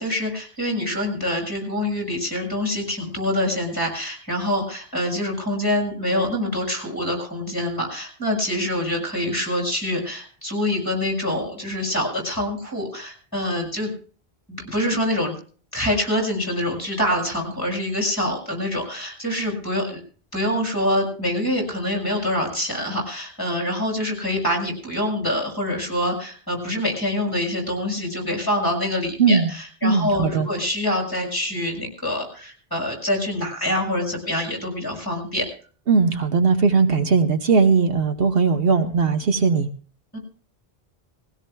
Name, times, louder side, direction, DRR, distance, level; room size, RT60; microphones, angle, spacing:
voice 1, 0.0-13.9 14.5-15.3 15.7-20.0 20.3-35.5 40.1-40.2, left 1 dB, 20° left, 1 dB, 6.2 m, -25 dB
voice 2, 29.2-29.5 29.8-30.5 35.9-39.7, right 5 dB, 70° right, 8 dB, 1.1 m, -19 dB
21.0 x 16.5 x 2.2 m, 0.40 s
omnidirectional pair, 1.0 m